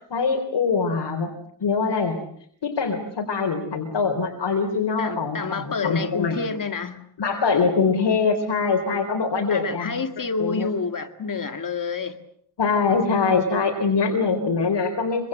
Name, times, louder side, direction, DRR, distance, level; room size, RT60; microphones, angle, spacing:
voice 1, 0.1-1.3 1.6-2.2 2.6-6.4 7.2-10.0 10.4-10.7 12.6-15.3, left 4 dB, 75° left, 3 dB, 3.9 m, -23 dB
voice 2, 5.0-7.0 9.5-12.2, left 4 dB, 50° left, 8 dB, 2.0 m, -28 dB
26.0 x 25.0 x 7.7 m, 0.65 s
wide cardioid pair, 160°, 41 cm